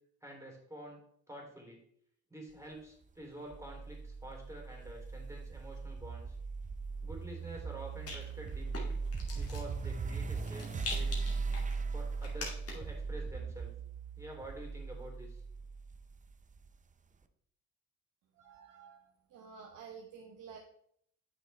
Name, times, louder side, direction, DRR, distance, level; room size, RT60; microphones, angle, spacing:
voice 1, 0.2-1.0 1.3-1.8 2.3-6.4 7.0-9.0 9.3-11.2 11.9-13.7 14.2-15.4, right 1 dB, 10° right, 0 dB, 3.2 m, -48 dB
sound 1, 3.5-16.7, right 4 dB, 25° right, 0.5 m, -39 dB
Rattle, 6.9-13.0, left 3 dB, 50° left, 2.5 m, -46 dB
voice 2, 18.4-19.0 19.3-20.6, right 6 dB, 80° right, 1 dB, 1.2 m, -51 dB
8.5 x 6.1 x 3.3 m, 0.66 s
cardioid pair, 90°, 30 cm